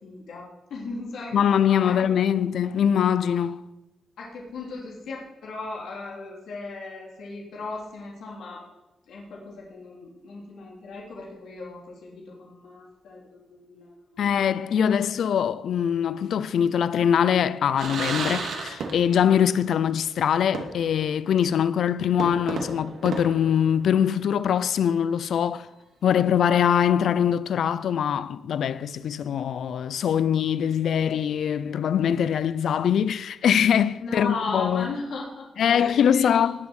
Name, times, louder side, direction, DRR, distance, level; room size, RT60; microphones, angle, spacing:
voice 1, 0.0-1.9 4.2-8.6 9.1-14.6 34.0-36.4, left 3 dB, 90° left, 3.8 m, -37 dB
voice 2, 1.3-3.7 14.2-25.7 26.0-34.9 35.6-36.5, left 8 dB, 70° left, 0.5 m, -23 dB
sound 1, 17.8-19.4 19.6-19.7 20.5-21.1 21.4-21.5 22.2-24.2, right 4 dB, 80° right, 2.6 m, -33 dB
19.5 x 7.2 x 6.4 m
wide cardioid pair, 145°, 0 cm